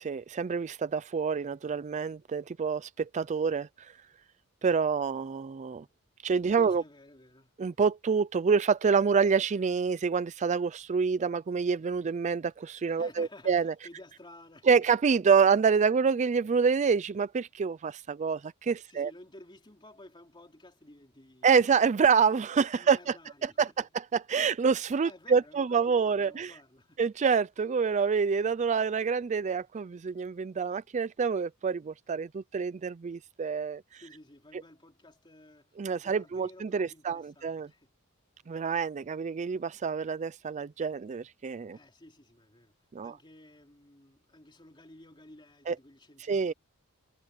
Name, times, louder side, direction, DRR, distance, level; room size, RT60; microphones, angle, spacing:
voice 1, 0.0-3.7 4.6-5.8 6.2-6.8 7.6-13.7 14.7-19.1 21.4-23.0 23.4-23.7 24.3-26.5 27.0-34.0 35.8-37.7 38.5-41.8 42.9-43.1 45.7-45.8 46.3-46.5, right 5 dB, 30° right, 0.4 m, -27 dB
voice 2, 6.5-7.5 12.9-14.9 18.9-21.5 22.7-23.9 25.0-27.0 34.0-37.9 41.7-42.7 43.0-46.5, left 1 dB, 20° left, 3.2 m, -53 dB
head